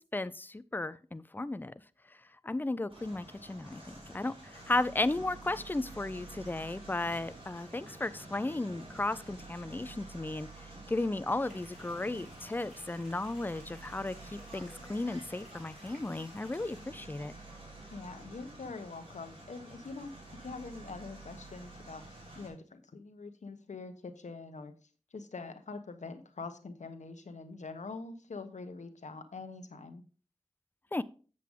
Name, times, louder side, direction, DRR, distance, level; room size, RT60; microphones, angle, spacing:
voice 1, 0.1-1.7 2.1-2.2 2.4-17.3 30.9-31.0, left 2 dB, 15° left, 15 dB, 0.4 m, -35 dB
sound 1, 2.9-22.5, right 2 dB, 50° right, 3.6 m, -50 dB
mountain fountain, 11.4-16.8, equal, ahead, 3.7 m, -58 dB
voice 2, 17.9-20.1 20.4-24.7 25.1-30.0, left 4 dB, 85° left, 8 dB, 0.9 m, -44 dB
7.6 x 7.4 x 3.6 m, 0.38 s
wide cardioid pair, 80°, 12 cm